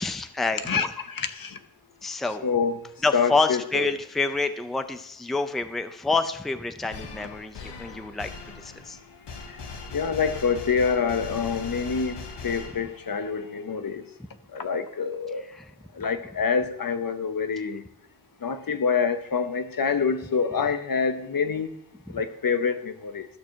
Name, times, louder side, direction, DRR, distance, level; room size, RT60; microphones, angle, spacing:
voice 1, 0.0-0.9 2.0-2.5 3.0-9.0 15.4-15.7, left 3 dB, ahead, 0.5 m, -28 dB
voice 2, 0.7-1.6 2.4-2.8 3.1-3.9 9.5-9.6 9.9-14.0 14.5-15.4 15.9-17.8 18.4-21.7 22.1-23.3, left 6 dB, 55° left, 0.8 m, -26 dB
sound 1, 6.9-13.2, left 4 dB, 90° left, 1.1 m, -40 dB
13.0 x 6.2 x 4.6 m
wide cardioid pair, 85°, 40 cm